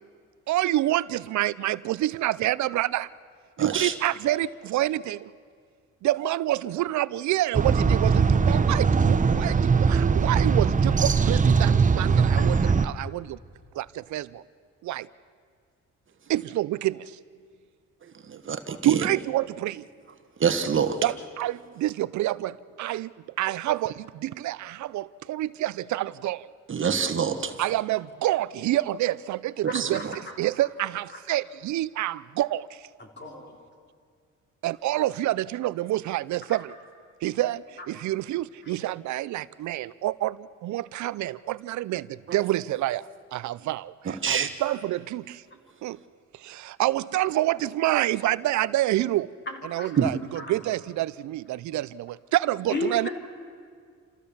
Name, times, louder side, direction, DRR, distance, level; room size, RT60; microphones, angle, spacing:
voice 1, 0.5-3.1 3.6-5.3 6.0-12.6 12.8-13.4 13.7-14.4 14.8-15.1 16.3-17.2 18.8-19.8 21.0-23.1 23.4-26.5 27.6-30.0 30.4-32.8 34.6-36.7 37.2-43.0 43.3-45.4 45.8-46.0 46.4-49.3 49.6-53.1, right 15 dB, 70° right, 18 dB, 0.5 m, -27 dB
voice 2, 3.6-3.9 18.3-19.1 20.4-21.0 26.7-27.6 29.6-30.1 44.0-44.5 50.0-50.1, right 7 dB, 40° right, 8 dB, 1.3 m, -26 dB
sound 1, 7.5-12.9, right 5 dB, 25° right, 0.8 m, -21 dB
voice 3, 29.7-30.1 33.0-33.6 38.6-38.8 49.5-49.9 50.4-50.5 52.7-53.1, left 3 dB, 35° left, 2 dB, 3.6 m, -34 dB
28.0 x 15.0 x 7.1 m, 2.1 s
cardioid pair, 90°, 30 cm